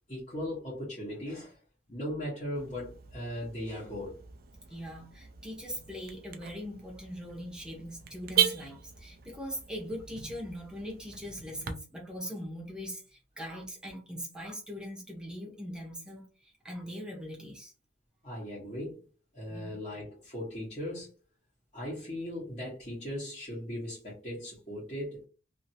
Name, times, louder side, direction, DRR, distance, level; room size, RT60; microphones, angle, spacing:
voice 1, 0.1-1.6 1.9-4.1 18.2-19.0 19.3-21.1 21.7-25.3, left 1 dB, 35° left, 1.3 m, -38 dB
Car / Alarm, 2.5-11.7, right 10 dB, 50° right, 0.4 m, -37 dB
voice 2, 4.7-17.7 19.5-19.8, equal, 5° right, 1.0 m, -41 dB
2.8 x 2.8 x 2.7 m
head